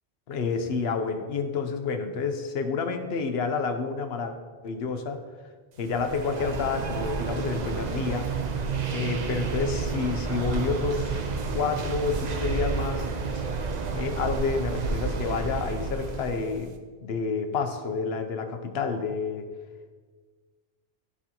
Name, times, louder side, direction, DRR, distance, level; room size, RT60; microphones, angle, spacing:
voice 1, 0.3-4.3 4.6-5.2 5.8-8.3 8.9-11.2 11.5-13.1 13.9-16.7 17.0-19.4, left 5 dB, 80° left, 7 dB, 1.0 m, -29 dB
sound 1, 5.8-16.7, right 4 dB, 50° right, 0.7 m, -30 dB
13.0 x 4.8 x 2.9 m, 1.5 s
omnidirectional pair, 1.0 m